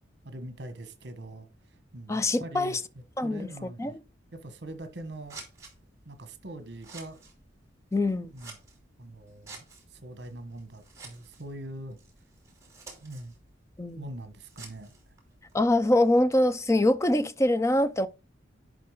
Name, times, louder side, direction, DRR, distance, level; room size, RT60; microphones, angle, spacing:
voice 1, 0.2-1.5 1.9-4.0 4.3-5.4 6.1-7.2 8.3-8.6 9.0-9.6 9.9-12.0 13.0-13.3 13.9-14.9, right 1 dB, 60° right, 1.2 m, -42 dB
voice 2, 2.1-2.8 3.2-3.5 3.8-3.9 7.9-8.3 13.8-14.1 15.5-18.1, left 1 dB, 15° left, 0.4 m, -24 dB
Scissors, 4.5-16.0, right 4 dB, 15° right, 2.8 m, -52 dB
10.5 x 3.8 x 4.8 m
head